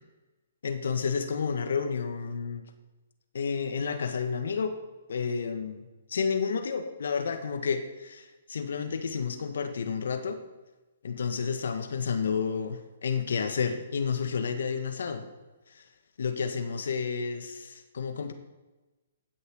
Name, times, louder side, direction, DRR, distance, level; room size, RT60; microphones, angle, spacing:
voice 1, 0.6-2.6 3.3-4.7 5.1-10.4 11.0-15.3 15.7-15.8 16.2-18.3, left 6 dB, 70° left, 7 dB, 1.5 m, -31 dB
16.5 x 6.4 x 4.8 m, 1.1 s
hypercardioid pair, 135°, 0 cm